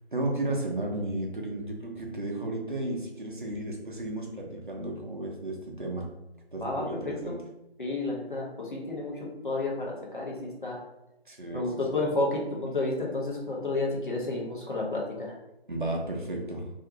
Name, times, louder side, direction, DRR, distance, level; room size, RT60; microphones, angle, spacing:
voice 1, 0.1-6.1 6.5-7.4 11.3-11.8 15.7-16.7, right 1 dB, 50° right, -1 dB, 0.5 m, -33 dB
voice 2, 6.6-7.4 7.8-10.8 11.5-15.3, left 2 dB, 50° left, -3 dB, 0.7 m, -31 dB
2.5 x 2.1 x 2.7 m, 0.89 s
figure-of-eight pair, 175°, 32 cm